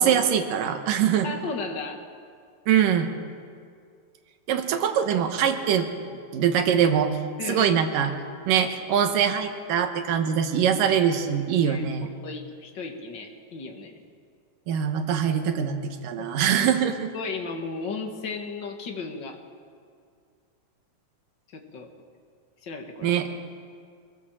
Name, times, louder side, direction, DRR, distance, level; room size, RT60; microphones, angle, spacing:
voice 1, 0.0-1.3 2.7-3.1 4.5-5.9 6.3-7.2 7.5-8.1 8.5-12.1 14.7-15.8 16.0-17.1 23.0-23.3, right 8 dB, 80° right, 6 dB, 2.8 m, -23 dB
voice 2, 1.2-2.0 7.4-7.8 11.6-11.8 12.2-14.0 16.2-16.9 17.1-19.4 21.5-21.9 22.6-23.1, left 4 dB, 40° left, 3 dB, 2.0 m, -35 dB
24.0 x 17.5 x 7.4 m, 2.2 s
omnidirectional pair, 3.9 m